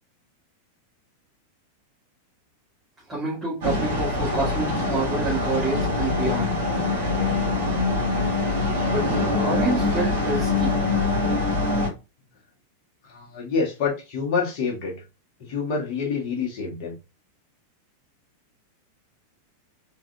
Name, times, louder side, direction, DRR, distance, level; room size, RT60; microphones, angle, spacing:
voice 1, 3.1-6.5 8.9-9.1 9.3-10.8, right 2 dB, 15° right, 2.0 m, -28 dB
sound 1, 3.6-11.9, left 2 dB, 55° right, 1.8 m, -24 dB
voice 2, 13.0-15.0 15.4-17.0, left 5 dB, 45° left, 1.8 m, -27 dB
4.6 x 3.9 x 2.4 m
figure-of-eight pair, 90°, 0 cm